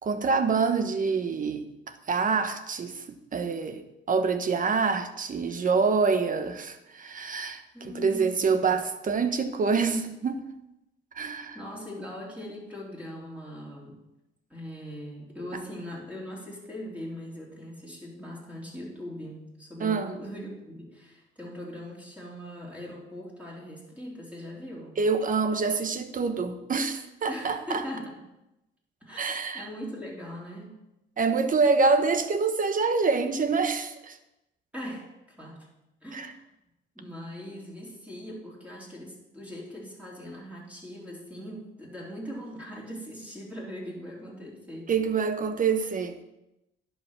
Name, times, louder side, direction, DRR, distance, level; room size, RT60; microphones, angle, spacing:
voice 1, 0.0-3.0 3.3-7.6 7.9-10.4 11.1-11.6 19.8-20.1 25.0-27.8 29.2-29.7 31.2-34.2 36.1-36.3 44.9-46.2, right 4 dB, 45° right, 1.1 m, -26 dB
voice 2, 7.7-8.5 11.5-14.0 14.5-25.0 27.3-28.3 29.0-30.8 34.7-35.7 36.0-36.4 37.0-44.9, equal, 5° right, 3.5 m, -40 dB
10.5 x 5.6 x 6.0 m
cardioid pair, 90°, 20 cm